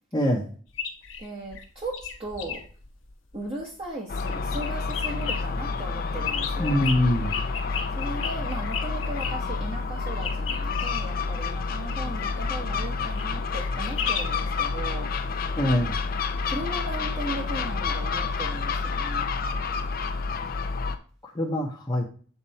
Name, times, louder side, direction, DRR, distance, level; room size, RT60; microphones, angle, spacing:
voice 1, 0.1-0.5 6.6-7.3 15.6-16.0 21.3-22.1, equal, 20° left, -5 dB, 0.9 m, -24 dB
sound 1, 0.7-3.9 4.2-5.4 5.9-9.3 10.2-14.5 20.3-20.4, left 7 dB, 75° left, 1.0 m, -34 dB
voice 2, 1.2-2.6 3.3-6.8 7.9-15.1 16.4-19.3, right 2 dB, 30° right, -3 dB, 1.3 m, -37 dB
Gull seagull, 4.1-21.0, left 4 dB, 50° left, 0.6 m, -29 dB
7.0 x 4.1 x 4.3 m, 0.42 s
head